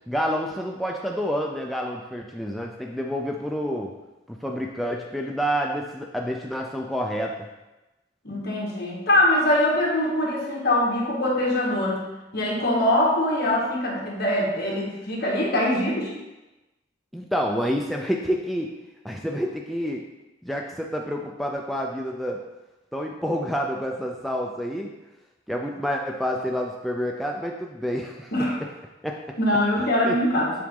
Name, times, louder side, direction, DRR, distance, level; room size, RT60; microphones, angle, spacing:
voice 1, 0.1-3.9 4.3-7.5 17.1-18.7 19.0-20.0 20.4-22.4 22.9-24.9 25.5-28.3 29.0-29.2 29.8-30.2, equal, ahead, 0 dB, 0.4 m, -28 dB
voice 2, 8.2-12.1 12.3-16.1 28.3-28.5 29.4-30.5, left 1 dB, 55° left, -3 dB, 1.6 m, -23 dB
7.6 x 4.0 x 3.7 m, 1.0 s
head